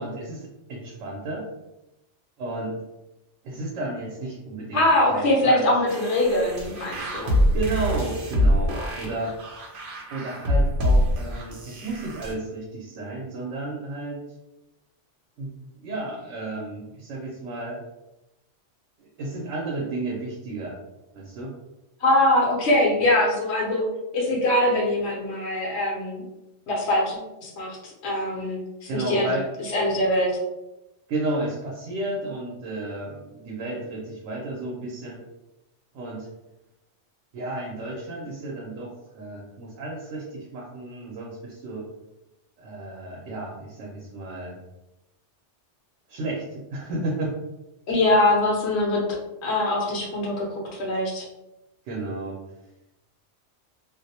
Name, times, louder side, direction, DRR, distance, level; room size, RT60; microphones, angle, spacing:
voice 1, 0.0-1.5 2.4-2.8 3.4-4.8 5.1-5.6 7.5-9.4 10.1-14.2 15.4-15.5 15.8-17.8 19.0-20.7 21.1-21.5 28.9-29.5 31.1-35.2 35.9-36.3 37.3-41.8 42.6-44.6 46.1-47.4 51.9-52.4, right 2 dB, 85° right, -3 dB, 0.9 m, -32 dB
voice 2, 4.7-7.4 22.0-23.8 24.1-26.2 26.7-29.3 29.7-30.3 47.9-49.0 49.4-51.3, left 1 dB, 65° left, -2 dB, 0.9 m, -23 dB
sound 1, 5.9-12.3, equal, 60° right, 0.7 m, -25 dB
2.4 x 2.0 x 2.7 m, 0.95 s
omnidirectional pair, 1.2 m